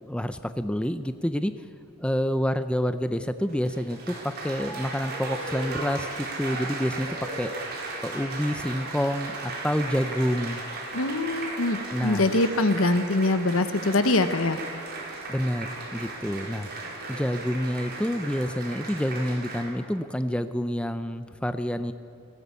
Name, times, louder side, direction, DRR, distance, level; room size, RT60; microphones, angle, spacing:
voice 1, 0.0-1.5 2.0-7.1 7.4-7.5 8.0-10.6 11.9-12.3 15.3-16.7 17.1-21.9, equal, 5° left, 10 dB, 0.5 m, -28 dB
Applause, 3.4-19.6, right 2 dB, 50° right, 4.6 m, -36 dB
voice 2, 10.9-14.6, left 2 dB, 70° left, 10 dB, 1.1 m, -23 dB
19.5 x 17.0 x 8.3 m, 2.4 s
head